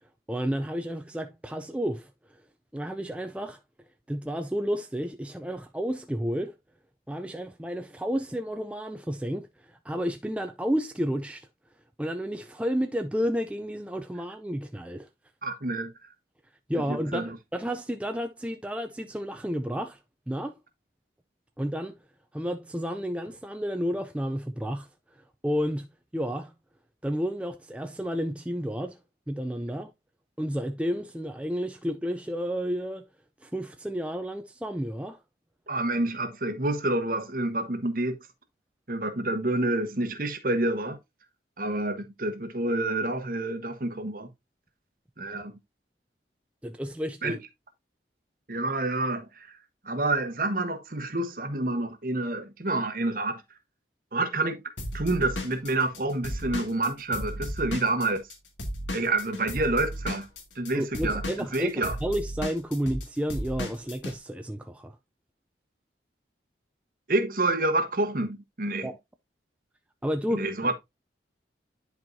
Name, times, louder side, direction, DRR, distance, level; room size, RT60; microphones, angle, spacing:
voice 1, 0.3-2.1 2.7-3.6 4.1-6.5 7.1-11.5 12.0-15.1 16.7-20.0 20.3-20.6 21.6-22.0 22.3-24.9 25.4-26.5 27.0-29.0 29.3-29.9 30.4-33.0 33.4-35.2 46.6-47.4 60.7-65.0 68.8-69.0 70.0-70.5, equal, 5° right, 0.4 m, -31 dB
voice 2, 15.4-15.9 16.9-17.4 35.7-38.2 38.9-41.0 41.6-44.3 45.2-45.5 47.2-47.4 48.5-49.5 49.8-53.4 54.1-54.6 54.9-58.2 58.9-60.3 60.5-61.2 61.5-62.0 67.1-68.9 70.3-70.7, right 2 dB, 50° right, 1.2 m, -28 dB
Drum kit / Drum, 54.8-58.3 58.6-64.1, equal, 90° left, 2.1 m, -34 dB
10.5 x 4.6 x 2.6 m
head